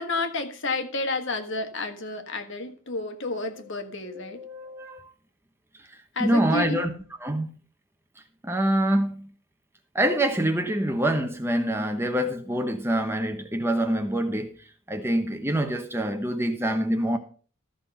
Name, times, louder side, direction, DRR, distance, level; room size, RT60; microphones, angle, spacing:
voice 1, 0.0-4.4 6.1-6.8, left 2 dB, 55° left, 1.5 m, -30 dB
voice 2, 4.1-5.1 6.2-6.9 7.2-7.5 8.4-9.3 9.9-14.6 14.9-17.2, right 1 dB, 10° right, 1.0 m, -25 dB
14.0 x 6.1 x 5.6 m
head